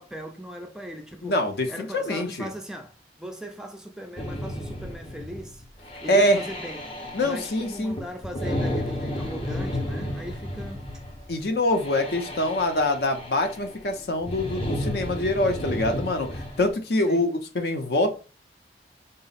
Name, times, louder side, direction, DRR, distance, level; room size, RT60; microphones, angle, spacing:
voice 1, 0.0-1.4 1.7-5.6 6.0-6.9 7.2-10.9 17.1-17.3, right 1 dB, 5° right, 0.3 m, -39 dB
voice 2, 1.2-2.5 6.1-6.4 7.1-8.0 11.3-18.1, left 1 dB, 65° left, 0.6 m, -24 dB
sound 1, 4.2-16.7, left 1 dB, 30° left, 0.7 m, -33 dB
3.9 x 2.0 x 4.0 m
head